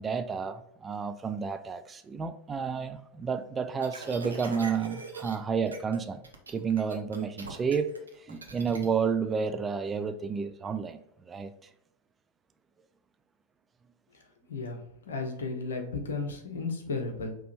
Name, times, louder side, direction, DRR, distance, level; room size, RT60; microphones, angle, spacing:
voice 1, 0.0-6.2 6.5-8.0 8.3-11.0 11.3-11.5, right 6 dB, 20° right, 0.3 m, -31 dB
sound 1, 3.8-5.4 5.7-6.0 6.2-8.9, right 3 dB, 75° right, 0.8 m, -41 dB
voice 2, 14.5-17.3, left 3 dB, 65° left, 0.9 m, -34 dB
4.9 x 3.0 x 3.2 m
figure-of-eight pair, 90°, 0 cm